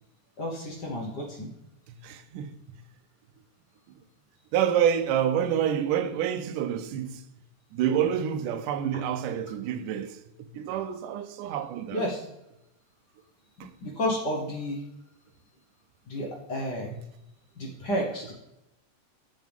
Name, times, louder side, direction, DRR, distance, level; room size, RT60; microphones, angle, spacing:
voice 1, 0.4-1.5 11.9-12.2 13.8-14.8 16.1-16.9 17.6-18.3, equal, 60° left, 1.1 m, -31 dB
voice 2, 2.0-2.5 4.5-7.2 7.7-12.0 13.6-13.7 16.9-17.0, right 9 dB, 85° right, 2.2 m, -28 dB
7.7 x 7.2 x 3.5 m
omnidirectional pair, 3.6 m